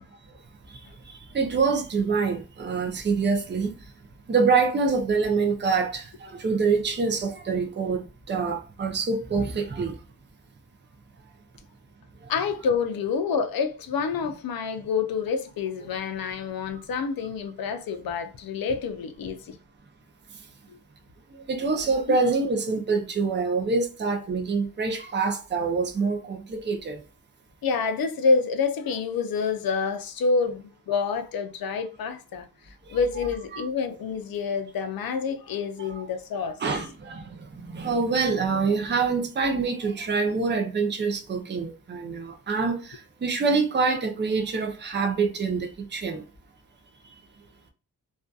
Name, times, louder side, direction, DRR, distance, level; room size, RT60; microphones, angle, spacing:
voice 1, 1.3-3.7 4.3-10.0 21.5-27.0 33.5-33.6 35.8-36.1 36.6-46.2, right 4 dB, 30° right, 0.5 m, -26 dB
voice 2, 12.3-19.5 27.6-32.4 32.9-36.6, left 5 dB, 70° left, 0.5 m, -27 dB
2.6 x 2.3 x 2.2 m
wide cardioid pair, 170°, 36 cm